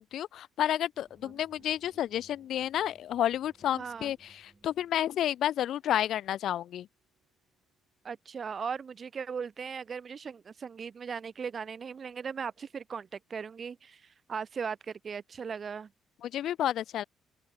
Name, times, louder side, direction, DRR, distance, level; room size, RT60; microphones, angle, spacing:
voice 1, 0.0-6.9 16.2-17.0, left 11 dB, 70° left, 0.3 m, -31 dB
sound 1, 0.9-5.6, right 2 dB, 15° right, 4.3 m, -64 dB
sound 2, 1.5-9.5, right 16 dB, 85° right, 4.6 m, -73 dB
voice 2, 3.7-4.1 8.0-15.9, right 6 dB, 45° right, 0.5 m, -38 dB
open air
cardioid pair, 90°, 0 cm